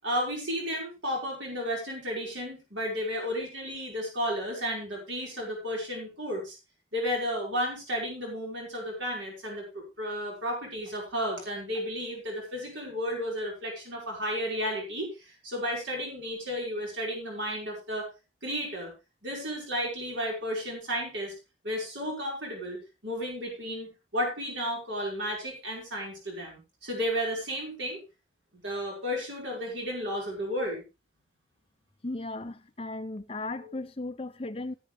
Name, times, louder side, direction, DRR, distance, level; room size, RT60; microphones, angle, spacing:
voice 1, 0.0-6.6 6.9-18.1 18.4-18.9 19.2-21.3 21.6-22.8 23.0-28.0 28.5-30.8, equal, 85° right, 5.4 m, -33 dB
voice 2, 32.0-34.7, left 2 dB, 30° left, 0.7 m, -36 dB
13.5 x 10.5 x 3.4 m
head